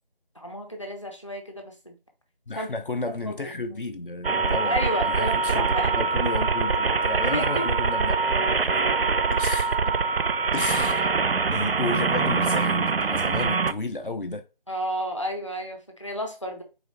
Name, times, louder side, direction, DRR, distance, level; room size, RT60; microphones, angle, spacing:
voice 1, 0.3-2.0 2.5-2.7 3.1-3.8 4.6-6.0 7.2-7.7 14.7-16.6, equal, 30° left, 0.8 m, -32 dB
voice 2, 2.5-5.7 6.0-8.2 8.6-8.7 9.3-10.0 10.5-11.2 11.5-14.5, left 2 dB, 65° left, 0.6 m, -32 dB
sound 1, 4.2-13.7, right 4 dB, 85° right, 0.5 m, -24 dB
3.9 x 3.9 x 2.9 m
figure-of-eight pair, 175°, 29 cm